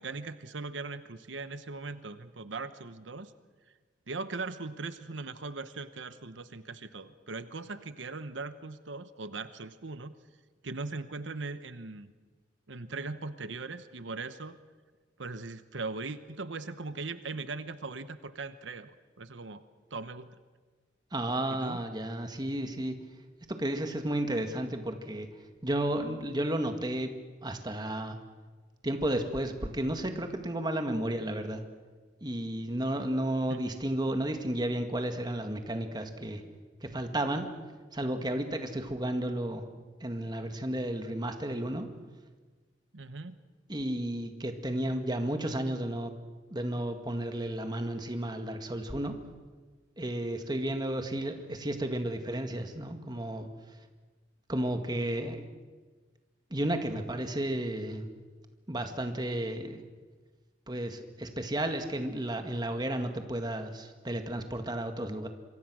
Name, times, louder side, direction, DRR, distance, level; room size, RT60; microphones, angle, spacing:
voice 1, 0.0-3.3 4.1-10.1 10.6-12.1 12.7-14.6 15.2-19.6 19.9-20.4 21.5-21.8 33.5-33.6 42.9-43.4, right 3 dB, 90° right, 12 dB, 1.1 m, -39 dB
voice 2, 21.1-22.9 23.5-25.3 25.6-27.1 27.4-28.2 28.8-31.6 32.2-36.4 36.8-37.5 37.9-39.6 40.0-41.9 43.7-46.1 46.5-49.1 50.0-53.5 54.5-55.4 56.5-58.1 58.7-59.8 60.7-65.3, right 1 dB, 25° right, 6 dB, 1.9 m, -32 dB
26.5 x 24.0 x 6.3 m, 1.4 s
head